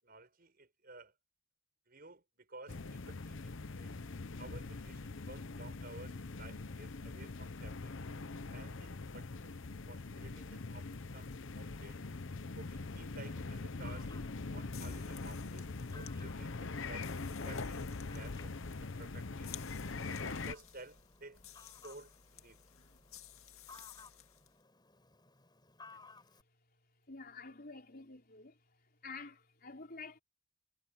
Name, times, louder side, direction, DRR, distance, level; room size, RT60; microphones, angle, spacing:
voice 1, 0.0-1.1 1.9-3.4 3.8-3.9 4.4-7.9 8.4-9.6 9.9-11.3 11.5-12.0 12.5-14.1 14.5-16.5 16.9-18.5 19.0-19.5 20.0-21.4 21.8-22.6, right 2 dB, 45° right, 5.9 m, -54 dB
sound 1, 2.7-20.5, left 3 dB, 65° left, 0.9 m, -43 dB
Fowl, 13.1-26.4, left 3 dB, 20° left, 4.6 m, -61 dB
sound 2, 14.7-24.6, left 11 dB, 90° left, 2.0 m, -56 dB
voice 2, 27.1-28.5 29.0-30.2, left 4 dB, 45° left, 4.7 m, -49 dB
head